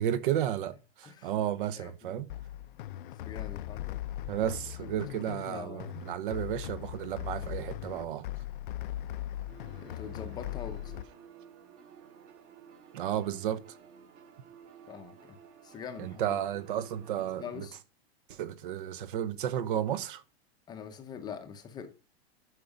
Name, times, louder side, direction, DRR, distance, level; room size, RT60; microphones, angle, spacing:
voice 1, 0.0-2.3 4.3-8.3 12.9-13.8 16.0-17.7 18.3-20.2, right 10 dB, 55° right, 0.9 m, -33 dB
voice 2, 1.8-2.2 3.1-4.0 4.8-6.0 7.4-7.5 9.8-11.0 14.9-15.4 15.6-16.4 17.4-17.8 20.7-21.9, left 7 dB, 15° left, 0.7 m, -44 dB
sound 1, 2.3-11.0, left 14 dB, 55° left, 0.5 m, -39 dB
sound 2, 9.5-17.7, right 7 dB, 25° right, 1.2 m, -54 dB
11.0 x 5.9 x 5.1 m
supercardioid pair, 165°, 31 cm